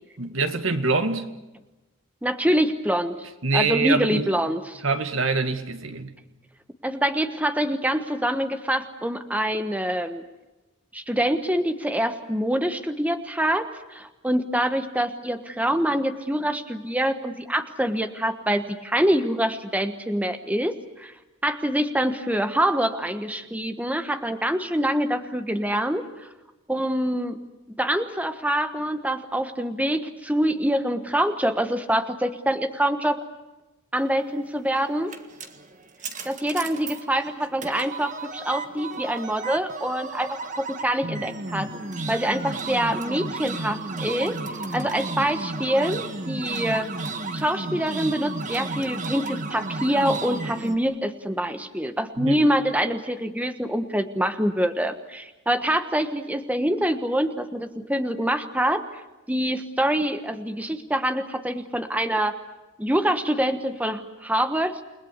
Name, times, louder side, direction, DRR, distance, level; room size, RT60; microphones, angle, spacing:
voice 1, 0.2-1.3 3.4-4.3 4.8-6.1 52.2-52.4, right 4 dB, 75° right, 2.1 m, -24 dB
voice 2, 2.2-3.2 3.5-4.8 6.8-10.2 10.9-21.1 21.4-26.3 26.7-27.4 27.8-33.2 33.9-35.1 36.2-41.7 42.1-44.4 44.7-46.9 47.3-59.0 59.3-62.4 62.8-64.8, right 1 dB, 5° right, 1.2 m, -25 dB
sound 1, 34.5-50.8, right 3 dB, 35° right, 1.8 m, -33 dB
29.5 x 20.5 x 8.1 m
head